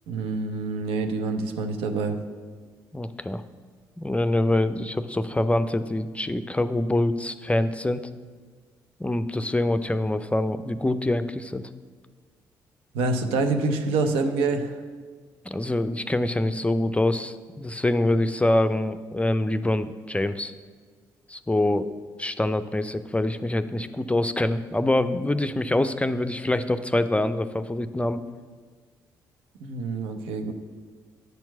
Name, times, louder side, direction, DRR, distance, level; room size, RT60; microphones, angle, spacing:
voice 1, 0.1-2.2 12.9-14.8 29.6-30.5, right 3 dB, 75° right, 6 dB, 0.7 m, -26 dB
voice 2, 2.9-3.4 4.0-8.0 9.0-11.6 15.5-20.5 21.3-28.2, left 1 dB, 15° left, 11 dB, 0.5 m, -25 dB
7.9 x 4.5 x 7.0 m, 1.5 s
hypercardioid pair, 45°, 10 cm